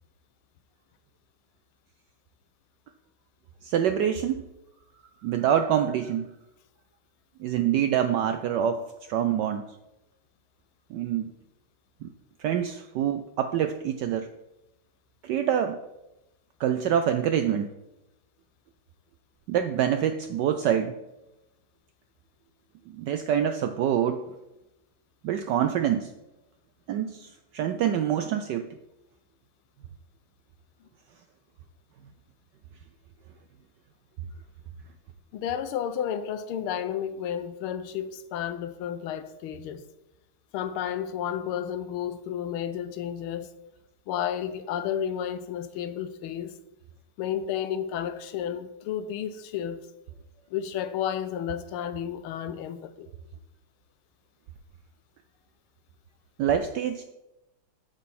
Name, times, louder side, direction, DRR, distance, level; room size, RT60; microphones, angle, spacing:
voice 1, 3.6-4.5 5.2-6.3 7.4-8.8 9.1-9.6 10.9-11.3 12.0-12.1 12.4-14.3 15.2-15.8 16.6-17.7 19.5-21.0 22.9-24.2 25.2-26.1 26.9-28.6 56.4-57.0, right 9 dB, 80° right, 0.9 m, -26 dB
voice 2, 35.3-39.8 40.5-43.5 44.1-46.5 47.2-49.9 50.5-53.1, left 9 dB, 85° left, 1.5 m, -32 dB
8.4 x 7.4 x 4.2 m
omnidirectional pair, 2.4 m